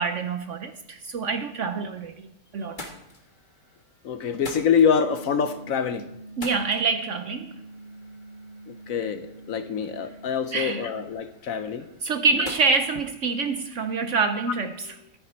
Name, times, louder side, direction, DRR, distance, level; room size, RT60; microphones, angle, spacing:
voice 1, 0.0-2.3 2.5-2.8 6.4-7.5 10.5-10.9 12.0-14.7, right 4 dB, 60° right, 0.9 m, -26 dB
sound 1, 2.1-2.3 2.6-14.2, left 2 dB, 30° left, 1.7 m, -47 dB
voice 2, 4.0-6.1 8.7-11.9 12.3-12.4, left 7 dB, 65° left, 1.0 m, -25 dB
sound 2, 4.9-11.1, right 2 dB, ahead, 2.7 m, -45 dB
14.0 x 9.3 x 4.3 m
omnidirectional pair, 1.8 m